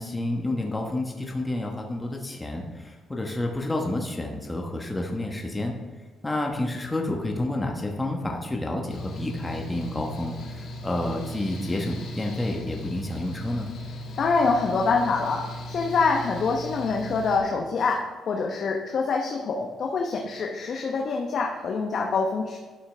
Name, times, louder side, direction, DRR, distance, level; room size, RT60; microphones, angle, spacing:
voice 1, 0.0-5.8 6.2-13.7, left 1 dB, 15° left, 1 dB, 1.1 m, -29 dB
Mechanical fan, 8.9-17.4, left 1 dB, 80° left, 1.8 m, -38 dB
voice 2, 14.2-22.6, left 4 dB, 60° left, 1 dB, 0.8 m, -25 dB
12.0 x 5.7 x 3.3 m, 1.3 s
cardioid pair, 90°, 0 cm